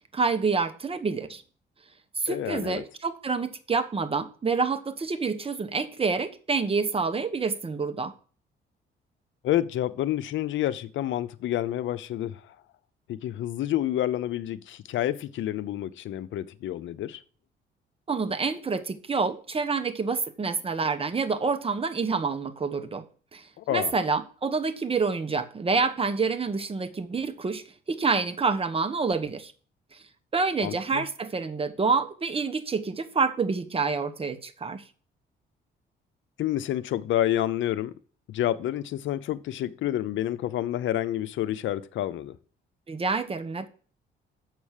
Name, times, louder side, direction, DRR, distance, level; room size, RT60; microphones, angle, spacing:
voice 1, 0.1-1.4 2.2-8.1 18.1-23.1 23.3-29.5 29.9-30.0 30.3-34.8 42.9-43.7, right 4 dB, 30° right, 1.1 m, -27 dB
voice 2, 2.3-2.8 9.4-12.5 13.1-17.2 23.6-23.9 30.6-31.0 36.4-37.9 38.3-42.4, left 12 dB, 75° left, 0.7 m, -29 dB
7.3 x 6.2 x 7.3 m
cardioid pair, 90°, 20 cm